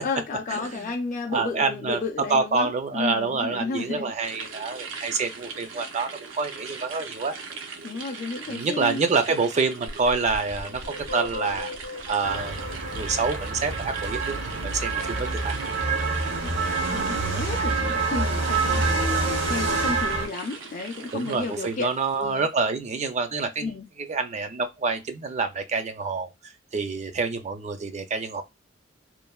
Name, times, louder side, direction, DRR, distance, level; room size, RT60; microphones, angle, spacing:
voice 1, 0.0-4.1 7.8-9.1 16.1-21.9 22.2-22.5 23.6-23.8, left 3 dB, 40° left, 0.4 m, -32 dB
voice 2, 0.5-0.8 1.3-2.0 2.3-6.1 6.3-7.3 8.5-10.8 11.1-11.7 12.1-14.4 14.6-15.6 18.7-19.0 21.1-23.7 24.1-26.3 26.7-28.4, right 4 dB, 35° right, 0.4 m, -27 dB
sound 1, 4.2-22.5, right 4 dB, 90° right, 0.6 m, -41 dB
sound 2, 9.9-14.7, left 3 dB, 85° left, 0.6 m, -38 dB
sound 3, 12.2-20.3, right 3 dB, 65° right, 0.9 m, -26 dB
3.1 x 2.0 x 2.2 m
head